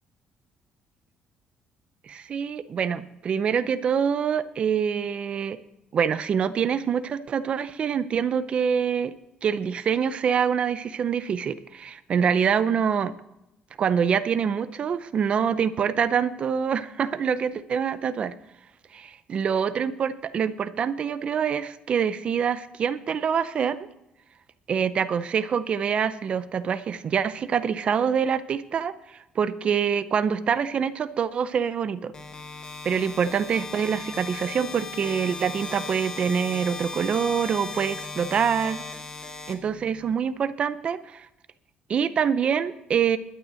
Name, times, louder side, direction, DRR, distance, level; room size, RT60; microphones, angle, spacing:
voice 1, 2.0-5.6 5.9-9.1 9.4-13.1 13.8-18.3 18.9-23.8 24.7-32.1 32.8-38.8 39.5-41.3 41.9-43.2, right 7 dB, 40° right, 14 dB, 0.6 m, -25 dB
sound 1, 32.1-40.1, left 3 dB, 25° left, 1.4 m, -37 dB
12.0 x 9.1 x 6.3 m, 0.87 s
cardioid pair, 150°, 3 cm